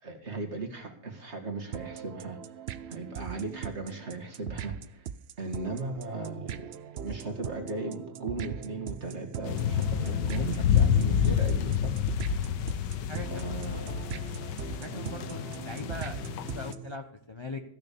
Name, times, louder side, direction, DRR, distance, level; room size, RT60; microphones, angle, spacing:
voice 1, 0.0-5.1 5.4-6.7 7.0-12.0 12.4-12.5 13.3-14.1 14.8-15.2, right 3 dB, 40° right, 3 dB, 2.4 m, -37 dB
sound 1, 1.7-17.0, right 9 dB, 75° right, 0.5 m, -40 dB
sound 2, 9.5-16.7, left 8 dB, 90° left, 1.4 m, -28 dB
voice 2, 13.1-14.0 14.8-17.6, left 2 dB, 20° left, 5 dB, 0.7 m, -41 dB
15.5 x 6.7 x 6.9 m, 0.67 s
omnidirectional pair, 1.8 m